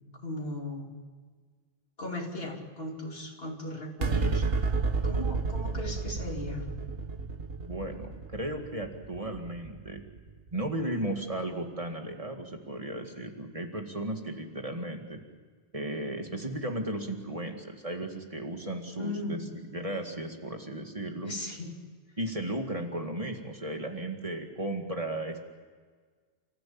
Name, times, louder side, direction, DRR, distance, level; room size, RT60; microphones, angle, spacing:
voice 1, 0.2-0.9 2.0-4.5 5.0-6.7 19.0-19.4 21.2-21.7, left 2 dB, 70° left, 1 dB, 3.5 m, -37 dB
sound 1, 4.0-10.7, right 4 dB, 70° right, 1.7 m, -31 dB
voice 2, 7.6-10.0 10.5-15.2 15.7-21.3 22.2-25.4, right 1 dB, 35° right, 3 dB, 2.1 m, -35 dB
30.0 x 15.0 x 8.7 m, 1.5 s
omnidirectional pair, 1.0 m